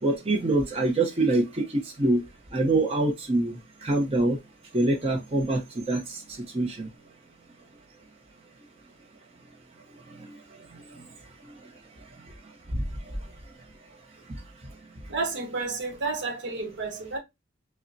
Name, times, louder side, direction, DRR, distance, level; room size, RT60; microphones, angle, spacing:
voice 1, 0.0-2.2 2.5-4.4 4.7-6.9 10.1-11.1 11.4-11.7 12.2-12.3 12.7-13.2 14.3-14.4, right 2 dB, 30° right, 0.8 m, -26 dB
voice 2, 15.1-17.2, right 3 dB, 65° right, 1.0 m, -31 dB
5.5 x 2.2 x 2.6 m
head